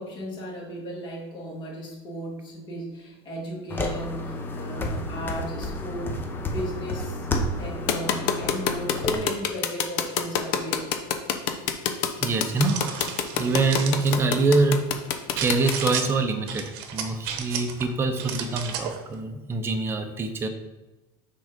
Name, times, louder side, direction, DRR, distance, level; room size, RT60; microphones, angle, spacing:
voice 1, 0.0-6.2 6.4-7.3 7.6-10.9, equal, 40° left, -2 dB, 2.3 m, -35 dB
sound 1, 3.7-9.1, left 1 dB, 15° left, 0.7 m, -31 dB
sound 2, 7.9-15.9, left 9 dB, 65° left, 0.7 m, -25 dB
voice 2, 12.2-13.0 13.4-14.9 15.4-16.7 16.9-20.5, right 3 dB, 20° right, 5 dB, 0.7 m, -24 dB
sound 3, 12.3-14.2 15.4-16.1 16.5-17.8 18.2-19.0, right 7 dB, 80° right, 1.0 m, -34 dB
6.2 x 3.8 x 5.2 m, 1.1 s
supercardioid pair, 145°, 12 cm